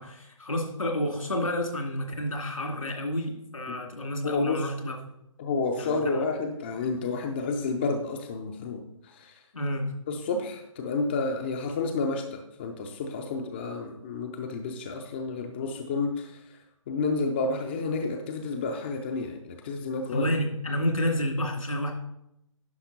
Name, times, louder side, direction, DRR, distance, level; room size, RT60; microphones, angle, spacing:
voice 1, 0.0-5.1 5.8-6.2 9.5-9.9 20.1-21.9, left 1 dB, 80° left, 2 dB, 2.5 m, -30 dB
voice 2, 4.2-4.7 5.4-9.4 10.1-16.4 16.9-20.3, left 3 dB, 20° left, 4 dB, 0.5 m, -30 dB
10.5 x 5.5 x 4.0 m, 0.80 s
figure-of-eight pair, 150°, 17 cm